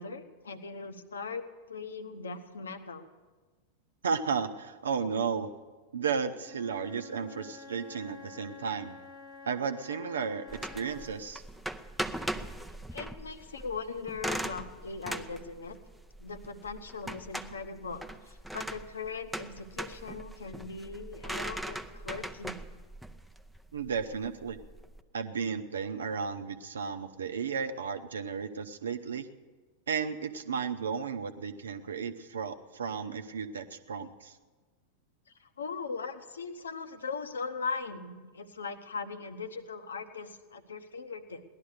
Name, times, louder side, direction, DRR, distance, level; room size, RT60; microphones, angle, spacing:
voice 1, 0.0-3.1 12.9-15.8 16.2-22.6 35.4-41.4, left 4 dB, 70° left, 10 dB, 0.9 m, -39 dB
voice 2, 4.0-5.5 5.9-8.9 9.4-11.4 23.7-24.6 25.1-29.3 29.9-34.4, right 6 dB, 70° right, 9 dB, 0.8 m, -34 dB
Wind instrument woodwind instrument, 6.4-11.4, left 4 dB, 45° left, 1.1 m, -49 dB
sound 1, 10.5-25.0, right 1 dB, ahead, 0.6 m, -40 dB
18.0 x 11.5 x 6.5 m, 1.3 s
figure-of-eight pair, 90°, 0 cm